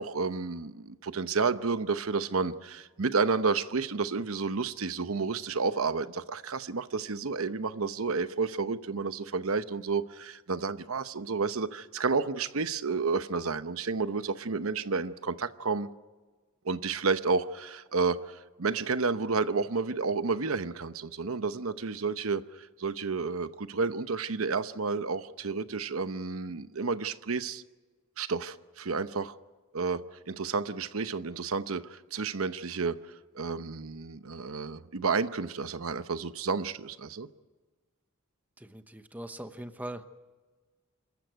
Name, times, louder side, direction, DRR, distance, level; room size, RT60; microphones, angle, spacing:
voice 1, 0.0-15.9 16.6-27.6 28.2-29.3 29.7-37.3, right 4 dB, 80° right, 0.9 m, -31 dB
voice 2, 38.6-40.1, right 1 dB, 10° right, 1.0 m, -41 dB
27.0 x 14.5 x 9.2 m
head